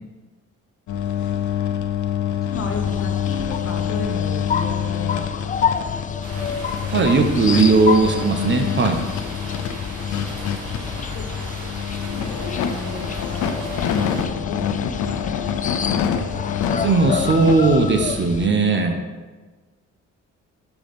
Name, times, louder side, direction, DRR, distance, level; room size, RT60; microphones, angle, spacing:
sound 1, 0.9-17.5, left 9 dB, 75° left, 0.6 m, -27 dB
voice 1, 2.4-5.6 10.7-11.2 12.0-15.2, left 3 dB, 45° left, 3 dB, 1.2 m, -34 dB
sound 2, 2.5-18.5, left 6 dB, 25° left, 0.3 m, -29 dB
Rain, 6.2-14.2, right 2 dB, 75° right, 2.0 m, -37 dB
voice 2, 6.9-9.0 16.8-19.0, right 3 dB, 40° right, 5 dB, 0.8 m, -17 dB
7.3 x 3.8 x 5.2 m, 1.3 s
cardioid pair, 90°, 30 cm